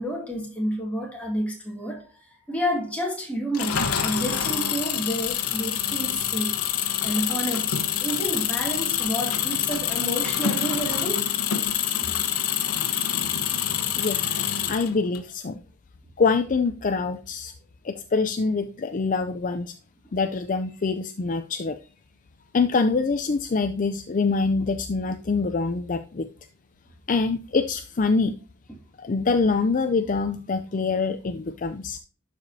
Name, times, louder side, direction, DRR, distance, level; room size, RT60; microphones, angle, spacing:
voice 1, 0.0-2.1 2.5-6.5 7.0-11.3, right 1 dB, 5° left, 2.3 m, -30 dB
Engine, 3.5-15.2, left 9 dB, 85° left, 1.0 m, -26 dB
voice 2, 14.0-14.3 14.7-15.6 16.2-17.5 17.8-19.7 20.1-21.7 22.5-26.2 27.1-28.3 29.0-32.0, left 4 dB, 35° left, 0.4 m, -25 dB
11.5 x 5.0 x 2.7 m
head